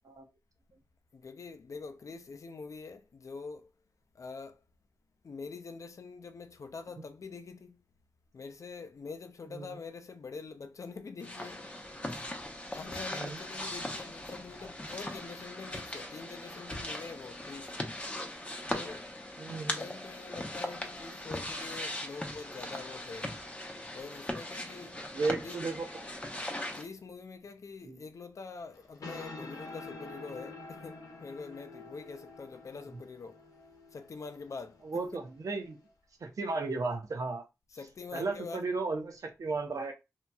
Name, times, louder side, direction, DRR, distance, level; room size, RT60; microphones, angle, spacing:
voice 1, 1.1-3.7 4.1-4.6 5.2-7.8 8.3-11.7 12.1-12.3 12.7-17.7 18.7-19.1 19.7-23.3 23.9-25.0 25.4-25.6 26.7-33.4 33.9-35.2 37.7-38.7, left 4 dB, 60° left, 0.5 m, -45 dB
sound 1, 11.2-26.9, left 1 dB, 20° left, 0.8 m, -39 dB
voice 2, 19.4-19.9 25.1-26.1 27.8-28.0 34.8-35.8 36.2-37.4 38.1-39.9, right 3 dB, 65° right, 0.8 m, -34 dB
sound 2, 28.7-35.9, left 3 dB, 75° left, 0.8 m, -48 dB
2.8 x 2.7 x 2.3 m
cardioid pair, 50°, 6 cm